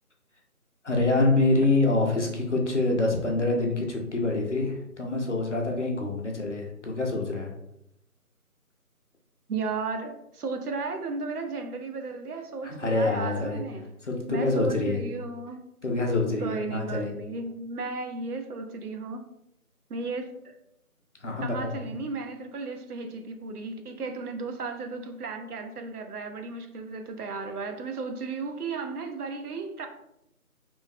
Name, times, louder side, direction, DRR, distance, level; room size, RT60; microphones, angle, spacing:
voice 1, 0.8-7.5 12.6-13.6 14.0-15.0 15.8-17.1 21.2-21.7, left 2 dB, 55° left, 0.6 m, -26 dB
voice 2, 9.5-13.8 14.3-15.7 16.4-19.2 19.9-20.6 21.4-29.9, right 4 dB, 80° right, 0.6 m, -34 dB
3.0 x 2.1 x 2.6 m
figure-of-eight pair, 170°, 45 cm